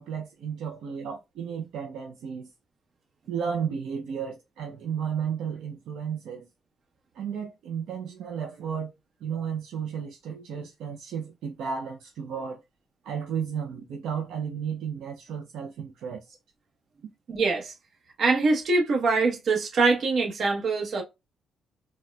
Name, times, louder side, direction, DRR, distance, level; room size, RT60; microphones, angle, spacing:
voice 1, 0.0-2.5 3.3-6.5 7.1-8.9 9.2-12.6 13.0-16.4, right 7 dB, 80° right, 0.5 m, -33 dB
voice 2, 17.3-17.7 18.2-21.0, right 3 dB, 60° right, 1.0 m, -23 dB
4.1 x 2.2 x 2.2 m
cardioid pair, 90°, 0 cm